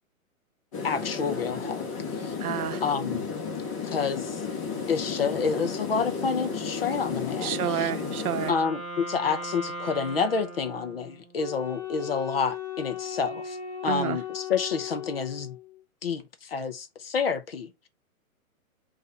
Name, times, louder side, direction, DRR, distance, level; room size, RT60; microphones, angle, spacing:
sound 1, 0.7-8.5, left 5 dB, 20° left, 1.1 m, -33 dB
voice 1, 0.8-1.9 2.2-2.3 2.8-3.2 3.8-4.4 4.9-7.9 8.5-13.6 13.8-15.6 16.0-17.9, left 5 dB, 45° left, 0.6 m, -29 dB
voice 2, 2.4-2.8 7.4-8.5 13.9-14.2, right 10 dB, 90° right, 0.7 m, -29 dB
Wind instrument woodwind instrument, 7.3-11.6, right 1 dB, 25° right, 1.9 m, -39 dB
Wind instrument woodwind instrument 2, 11.4-15.8, left 10 dB, 10° right, 1.7 m, -37 dB
3.9 x 2.6 x 4.0 m
hypercardioid pair, 175°, 43 cm